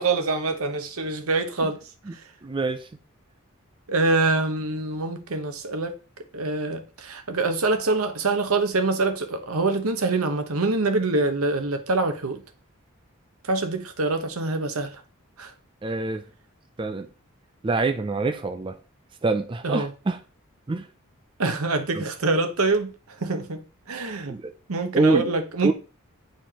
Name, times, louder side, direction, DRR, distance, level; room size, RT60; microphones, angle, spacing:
voice 1, 0.0-1.8 3.9-5.9 6.3-12.4 13.4-15.0 15.4-15.5 19.6-19.9 21.4-23.6 23.9-24.4 24.7-25.7, right 3 dB, 85° right, 1.0 m, -25 dB
voice 2, 2.4-2.9 15.8-16.2 16.8-17.1 17.6-18.8 19.2-20.2 20.7-20.9 21.9-22.0 24.3-24.5 24.9-25.3 25.6-25.7, right 3 dB, 20° right, 0.4 m, -25 dB
9.0 x 4.4 x 2.9 m
head